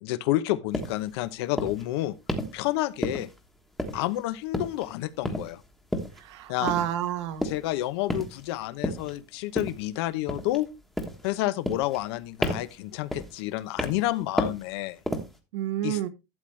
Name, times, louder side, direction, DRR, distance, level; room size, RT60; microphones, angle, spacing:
voice 1, 0.0-2.2 2.5-3.3 3.9-5.6 6.5-6.7 7.4-10.7 11.2-15.0 15.8-16.0, left 16 dB, 60° left, 0.8 m, -29 dB
sound 1, 0.7-1.0 1.6-1.8 2.3-2.6 3.0-3.4 3.8-4.2 4.5-4.9 5.2-5.5 5.9-6.2 6.7-6.9 7.4-7.7 8.1-8.5 8.8-9.1 9.6-9.9 10.3-10.7 11.0-11.3 11.7-12.1 12.4-12.8 13.1-13.4 13.8-14.1 14.4-14.7 15.1-15.4, equal, ahead, 1.3 m, -31 dB
voice 2, 6.2-7.5 15.5-16.1, right 12 dB, 70° right, 1.4 m, -29 dB
12.0 x 7.9 x 3.3 m
supercardioid pair, 165°, 15 cm